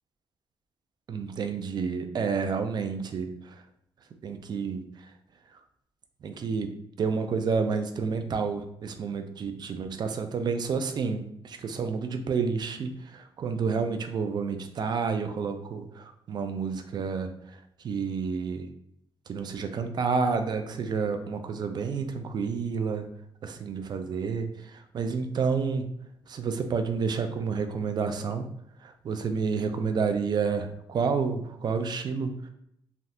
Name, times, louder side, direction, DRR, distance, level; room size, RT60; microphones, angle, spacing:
voice 1, 1.1-3.6 4.2-5.1 5.5-5.6 6.2-6.7 7.0-18.7 19.3-23.1 23.4-25.9 26.3-28.5 28.8-32.5, right 5 dB, 50° right, 7 dB, 0.4 m, -30 dB
3.3 x 2.7 x 2.3 m, 0.75 s
cardioid pair, 95°, 9 cm